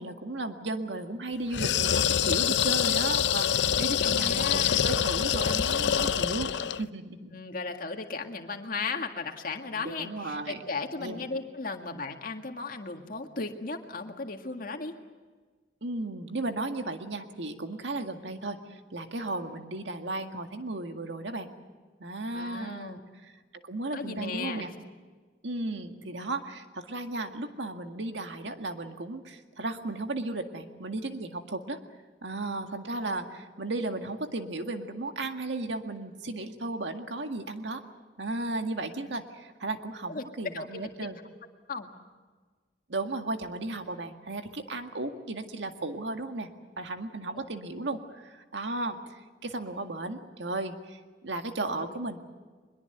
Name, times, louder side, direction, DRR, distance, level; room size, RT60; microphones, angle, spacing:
voice 1, 0.0-7.4 9.7-10.6 11.0-11.2 15.8-21.5 22.0-23.3 23.6-24.7 25.4-31.8 32.2-37.8 38.2-41.2 42.9-46.5 46.8-49.1 49.4-52.2, right 2 dB, 80° right, 6 dB, 1.9 m, -35 dB
sound 1, 1.5-6.9, left 9 dB, 75° left, 0.6 m, -26 dB
voice 2, 4.0-4.9 7.3-14.9 22.3-23.0 23.9-24.7 40.1-40.3 40.5-41.1 41.7-42.0 47.4-47.5 51.8-52.0, left 4 dB, 50° left, 4 dB, 2.0 m, -36 dB
23.0 x 22.0 x 8.0 m, 1.4 s
head